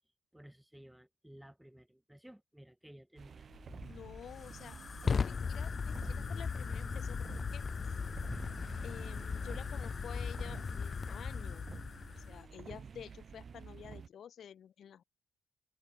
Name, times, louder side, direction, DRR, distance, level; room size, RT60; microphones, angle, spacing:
voice 1, 0.3-3.5, right 1 dB, 5° right, 2.5 m, -56 dB
sound 1, 3.2-14.1, right 6 dB, 45° right, 2.1 m, -51 dB
Fire, 3.5-12.5, left 5 dB, 40° left, 0.6 m, -38 dB
voice 2, 3.9-7.7 8.8-11.6 12.2-15.0, left 9 dB, 60° left, 3.5 m, -51 dB
cardioid pair, 90°, 0 cm